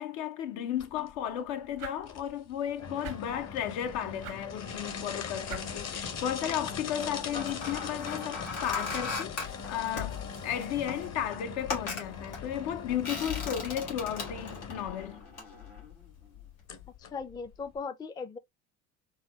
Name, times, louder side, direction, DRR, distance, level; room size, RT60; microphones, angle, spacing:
voice 1, 0.0-15.3, left 10 dB, 70° left, 0.7 m, -34 dB
sound 1, 0.8-17.8, left 6 dB, 40° left, 0.9 m, -41 dB
sound 2, 1.7-11.3, right 6 dB, 85° right, 0.8 m, -51 dB
sound 3, 5.8-6.4 7.0-16.5 16.8-17.0, left 4 dB, 90° left, 1.4 m, -39 dB
voice 2, 17.0-18.4, left 5 dB, 10° left, 0.3 m, -38 dB
4.1 x 2.0 x 2.3 m
hypercardioid pair, 65°, 38 cm